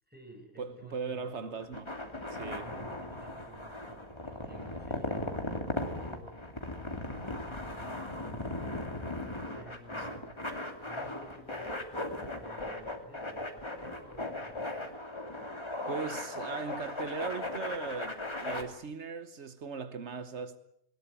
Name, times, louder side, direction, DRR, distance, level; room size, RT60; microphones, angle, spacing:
voice 1, 0.1-1.6 2.6-6.4 7.2-8.7 9.5-10.4 10.8-14.7, right 2 dB, 10° right, 7.5 m, -53 dB
voice 2, 0.6-1.8 2.3-2.7 10.0-10.1 15.9-20.6, right 5 dB, 80° right, 1.4 m, -38 dB
sound 1, 1.6-18.6, left 1 dB, 25° left, 2.7 m, -38 dB
22.0 x 20.5 x 8.9 m
omnidirectional pair, 1.1 m